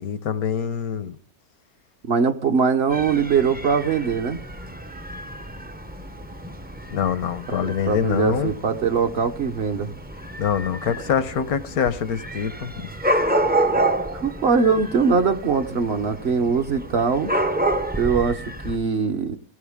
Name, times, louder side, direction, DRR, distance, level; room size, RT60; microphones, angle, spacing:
voice 1, 0.0-1.2 6.9-8.5 10.4-12.9, left 8 dB, 75° left, 1.3 m, -25 dB
voice 2, 2.0-4.4 7.6-9.9 14.1-17.3 18.0-19.4, right 5 dB, 50° right, 0.9 m, -22 dB
Dog / Cat, 2.9-18.8, right 1 dB, 15° right, 0.4 m, -29 dB
16.0 x 16.0 x 3.5 m
omnidirectional pair, 1.6 m